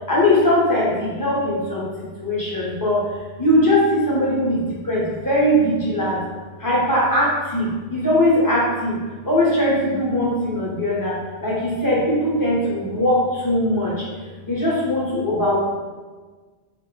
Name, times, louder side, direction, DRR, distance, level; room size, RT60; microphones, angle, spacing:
voice 1, 0.1-1.9 2.2-3.0 3.4-6.2 6.6-9.0 9.2-11.1 11.4-13.9 14.4-15.6, left 1 dB, 25° left, -6 dB, 0.6 m, -20 dB
3.3 x 2.0 x 3.1 m, 1.4 s
omnidirectional pair, 1.0 m